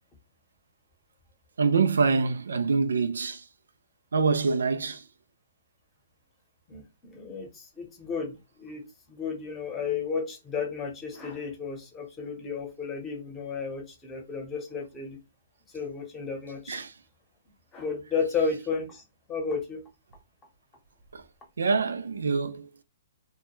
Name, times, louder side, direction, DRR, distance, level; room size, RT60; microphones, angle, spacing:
voice 1, 1.6-3.4 4.1-5.0 16.7-16.9 21.1-21.2 21.6-22.7, right 4 dB, 85° right, 0.3 m, -25 dB
voice 2, 6.7-15.2 15.7-16.8 17.7-19.0 19.3-19.8, left 5 dB, 20° left, 0.8 m, -33 dB
2.2 x 2.1 x 3.0 m
hypercardioid pair, 145°, 0 cm